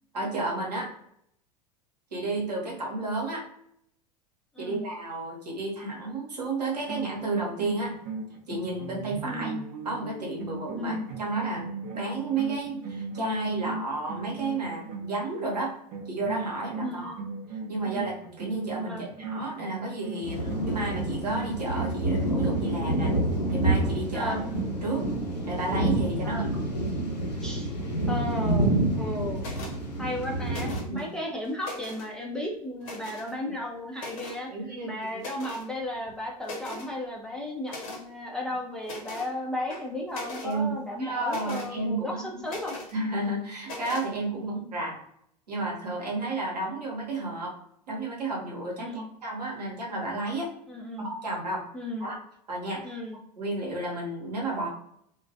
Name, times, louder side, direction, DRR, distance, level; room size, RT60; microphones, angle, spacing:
voice 1, 0.1-0.9 2.1-3.4 4.6-7.9 8.5-9.5 9.8-15.7 16.1-17.1 17.7-23.1 23.5-24.3 24.8-25.1 25.4-26.5 30.9-31.1 34.0-34.1 34.5-35.2 40.4-42.4 42.9-45.0 45.5-47.5 47.9-50.5 51.0-51.6 52.0-52.2 52.5-52.9 53.4-54.7, right 2 dB, 80° right, -3 dB, 0.9 m, -32 dB
voice 2, 4.5-4.9 9.2-9.6 10.8-11.0 16.8-17.3 17.9-18.1 18.9-19.1 24.1-24.4 26.2-26.5 27.4-27.7 28.1-28.7 29.0-29.4 30.0-34.5 34.8-42.8 48.8-49.1 50.7-51.1 51.7-52.1 52.8-53.2, left 1 dB, 5° left, -2 dB, 0.4 m, -34 dB
sound 1, 6.7-15.6 15.9-24.6, right 3 dB, 45° right, 0.6 m, -38 dB
sound 2, 20.2-30.8, right 1 dB, 90° left, 0.6 m, -28 dB
sound 3, 29.4-29.8 30.5-31.0 31.4-32.1 32.8-33.3 34.0-34.4 35.2-35.7 36.1-36.2 36.4-36.9 37.7-38.0 38.8-39.3 39.7-40.5 41.3-41.7 42.5-42.9 43.6-44.1, left 2 dB, 55° left, 0.7 m, -40 dB
2.3 x 2.1 x 2.6 m, 0.71 s
figure-of-eight pair, 80°, 21 cm